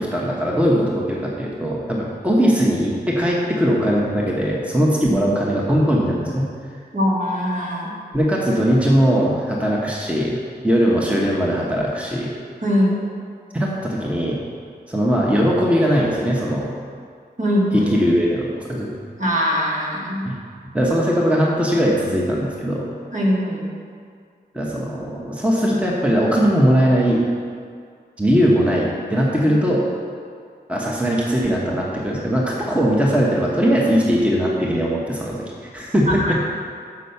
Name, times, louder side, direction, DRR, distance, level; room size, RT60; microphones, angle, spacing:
voice 1, 0.0-6.5 8.1-10.4 10.6-12.3 13.5-14.4 14.9-16.7 17.7-18.9 20.2-20.3 20.7-22.9 24.5-27.2 28.2-29.9 30.7-36.3, equal, 5° right, -4 dB, 1.1 m, -20 dB
voice 2, 6.9-7.9 12.6-13.0 17.4-17.9 19.2-20.3 23.1-23.7 36.1-36.4, equal, 45° right, -4 dB, 1.6 m, -21 dB
6.0 x 5.6 x 6.9 m, 2.2 s
wide cardioid pair, 85°, 18 cm